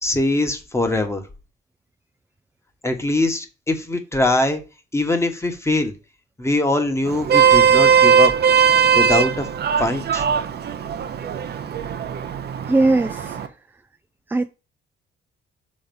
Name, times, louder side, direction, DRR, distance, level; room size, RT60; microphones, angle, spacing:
voice 1, 0.0-1.2 2.8-4.6 4.9-5.9 6.4-8.3 8.9-9.5 9.8-10.2, left 2 dB, 15° left, 1.2 m, -22 dB
Vehicle horn car horn honking, 7.1-13.5, right 7 dB, 55° right, 0.7 m, -18 dB
voice 2, 12.7-13.5 14.3-14.5, right 2 dB, 10° right, 0.3 m, -19 dB
6.4 x 3.1 x 5.3 m
cardioid pair, 90°, 20 cm